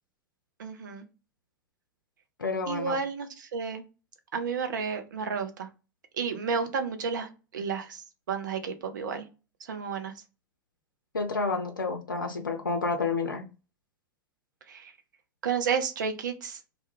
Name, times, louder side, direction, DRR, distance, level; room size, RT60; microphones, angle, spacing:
voice 1, 0.6-1.0 2.7-3.8 4.3-5.7 6.2-7.3 7.5-9.3 9.7-10.1 14.7-14.9 15.4-16.6, right 6 dB, 65° right, 0.5 m, -31 dB
voice 2, 2.4-3.0 11.1-13.4, left 4 dB, 85° left, 0.4 m, -29 dB
2.2 x 2.2 x 2.9 m
figure-of-eight pair, 85°, 11 cm